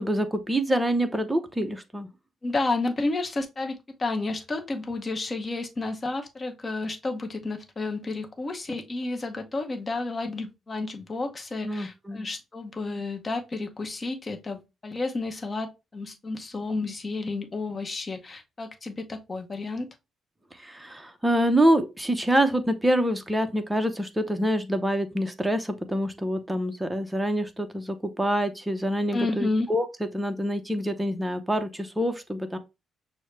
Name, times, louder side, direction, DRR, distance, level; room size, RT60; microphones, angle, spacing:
voice 1, 0.0-2.1 11.6-12.3 20.6-29.9 30.1-32.6, equal, 10° right, 0.6 m, -26 dB
voice 2, 2.4-19.9 29.1-29.7, left 3 dB, 30° left, 0.8 m, -31 dB
6.2 x 2.1 x 3.2 m
cardioid pair, 90°, 0 cm